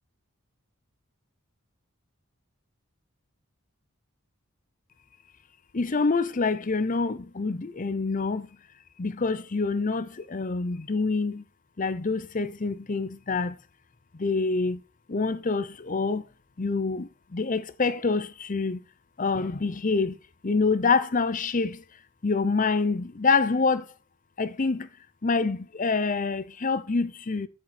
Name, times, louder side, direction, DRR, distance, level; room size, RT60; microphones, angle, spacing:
voice 1, 5.7-8.5 9.0-11.4 11.8-13.5 14.2-14.8 15.1-16.2 16.6-17.1 17.3-18.8 19.2-20.1 20.4-21.8 22.2-23.8 24.4-24.9 25.2-27.5, left 4 dB, 35° left, 0.6 m, -26 dB
7.5 x 7.4 x 4.2 m
head